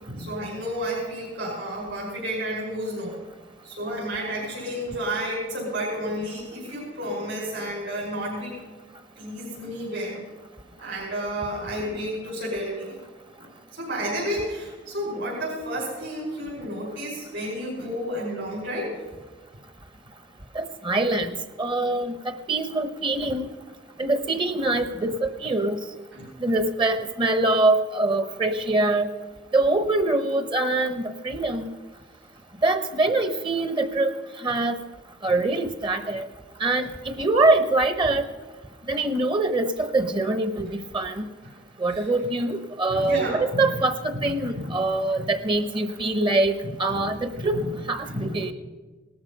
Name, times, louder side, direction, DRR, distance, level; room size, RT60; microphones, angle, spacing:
voice 1, 0.0-3.2 3.6-8.6 9.2-10.2 10.8-13.0 13.4-19.0 26.1-26.3 34.5-34.6 35.2-35.3 41.9-42.1 42.9-43.7 44.1-44.7 45.2-45.3 46.6-47.0 47.3-47.7 48.0-48.5, equal, 70° right, -7 dB, 5.5 m, -31 dB
voice 2, 20.5-21.3 21.6-23.5 24.0-25.8 26.4-29.1 29.5-31.7 32.6-34.1 34.4-34.8 35.2-36.3 36.6-38.2 38.9-41.2 41.8-47.6 47.9-48.5, right 2 dB, 25° right, 10 dB, 0.8 m, -24 dB
18.5 x 13.0 x 5.4 m, 1.3 s
head